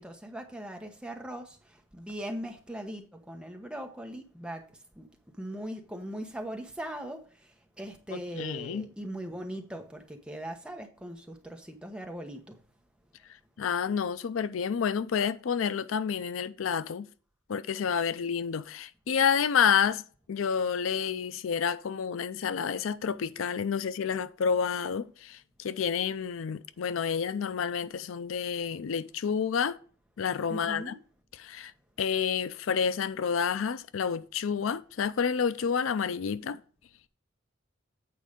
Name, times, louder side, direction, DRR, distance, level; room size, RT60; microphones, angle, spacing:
voice 1, 0.0-4.6 5.0-5.1 5.4-7.5 7.8-12.6 30.5-31.0, right 1 dB, 5° right, 1.0 m, -40 dB
voice 2, 8.1-8.9 13.6-17.1 17.5-20.0 20.3-29.8 30.2-30.9 31.4-31.7 32.0-36.6, left 7 dB, 85° left, 0.4 m, -29 dB
8.6 x 4.6 x 5.0 m
head